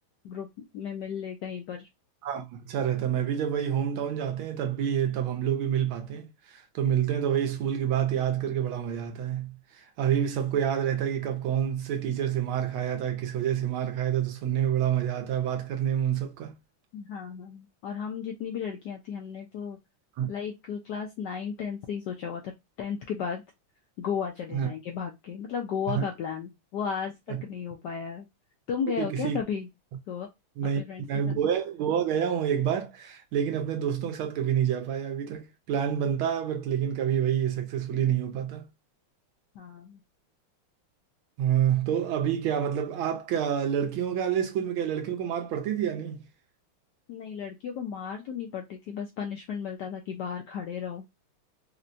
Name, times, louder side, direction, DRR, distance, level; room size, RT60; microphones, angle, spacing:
voice 1, 0.2-1.9 16.9-19.8 20.3-22.5 22.8-23.4 24.0-27.1 27.4-28.3 28.7-29.7 30.1-30.3 30.8-31.4 39.6-40.0 47.1-51.1, left 7 dB, 80° left, 0.9 m, -34 dB
voice 2, 2.2-16.5 20.2-20.3 24.5-24.7 25.9-26.1 27.3-27.4 29.0-29.4 30.6-30.8 31.1-38.7 41.4-46.2, right 9 dB, 75° right, 1.5 m, -28 dB
4.3 x 2.1 x 2.5 m
omnidirectional pair, 2.4 m